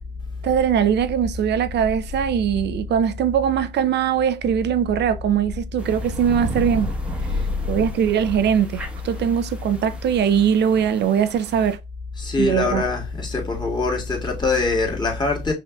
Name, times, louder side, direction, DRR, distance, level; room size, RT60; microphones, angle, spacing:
voice 1, 0.4-6.9 7.7-11.8 12.4-12.8, right 8 dB, 60° right, 0.5 m, -21 dB
sound 1, 5.8-11.8, right 1 dB, 5° right, 1.0 m, -33 dB
voice 2, 12.2-15.5, left 3 dB, 20° left, 1.8 m, -23 dB
5.6 x 2.6 x 2.2 m
cardioid pair, 90°, 20 cm